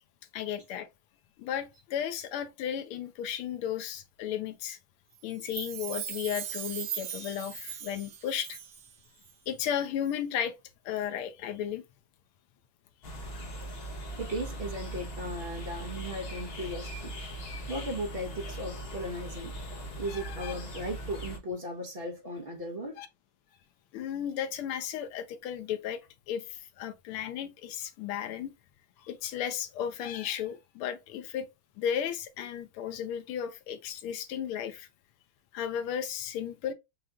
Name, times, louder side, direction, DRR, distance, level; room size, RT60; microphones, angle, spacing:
voice 1, 0.3-0.9 1.4-4.8 5.2-8.6 9.5-10.5 10.8-11.8 20.1-20.5 23.0-23.1 23.9-26.0 26.3-28.5 29.0-31.5 31.8-34.9 35.5-36.7, left 9 dB, 85° left, 1.6 m, -34 dB
Chime, 5.3-8.9 9.2-9.3, right 10 dB, 65° right, 1.0 m, -39 dB
sound 1, 13.0-21.4, right 1 dB, 60° left, 0.6 m, -40 dB
voice 2, 14.2-17.2 17.7-19.6 20.0-23.0, equal, 50° right, 0.6 m, -37 dB
6.3 x 2.8 x 2.3 m
omnidirectional pair, 2.4 m